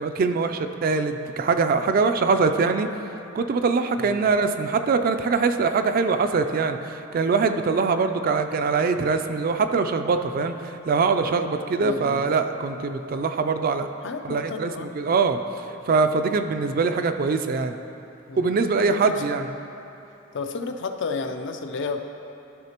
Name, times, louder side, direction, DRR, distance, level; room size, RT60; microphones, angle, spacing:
voice 1, 0.0-2.9 3.3-13.9 14.2-15.4 15.9-17.7 18.4-19.5, right 4 dB, 45° right, 8 dB, 0.3 m, -23 dB
voice 2, 11.8-12.3 14.0-15.0 18.3-18.5 18.9-19.2 20.3-22.1, left 4 dB, 65° left, 6 dB, 0.5 m, -32 dB
12.5 x 5.7 x 2.9 m, 2.8 s
head